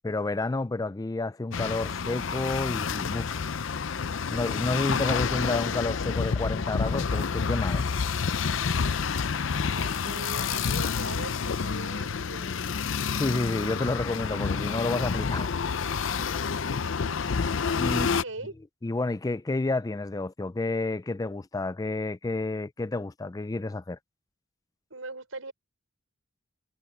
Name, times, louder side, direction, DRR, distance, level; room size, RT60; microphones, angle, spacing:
voice 1, 0.0-3.5 4.3-7.9 13.1-15.5 17.8-18.1 18.8-24.0, left 2 dB, 20° left, 0.4 m, -30 dB
sound 1, 1.5-18.2, left 5 dB, 65° left, 0.6 m, -29 dB
voice 2, 9.7-12.8 16.8-17.2 17.9-18.5 24.9-25.5, right 2 dB, 85° right, 5.3 m, -41 dB
head